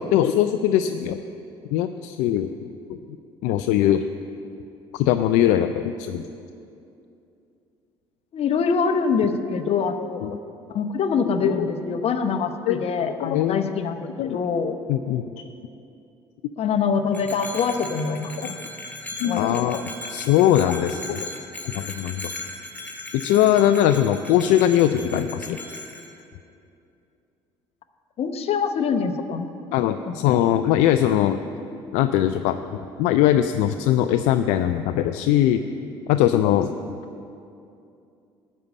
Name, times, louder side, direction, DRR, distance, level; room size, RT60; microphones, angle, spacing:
voice 1, 0.1-1.2 1.7-2.5 2.9-3.0 3.4-4.1 4.9-6.2 10.2-10.4 11.4-11.7 12.7-12.8 13.2-13.7 14.2-14.4 14.9-15.4 19.2-19.8 20.1-21.3 21.6-22.3 23.1-25.6 29.7-31.4 31.9-35.6 36.1-36.7, left 11 dB, 70° left, 9 dB, 0.4 m, -21 dB
voice 2, 8.3-10.2 10.7-14.8 16.6-18.6 19.2-19.7 28.2-29.5 30.1-30.2, left 5 dB, 50° left, 7 dB, 0.9 m, -24 dB
Bell, 17.1-26.1, left 2 dB, 10° left, 2.1 m, -37 dB
11.5 x 5.5 x 8.2 m, 2.6 s
hypercardioid pair, 60°, 13 cm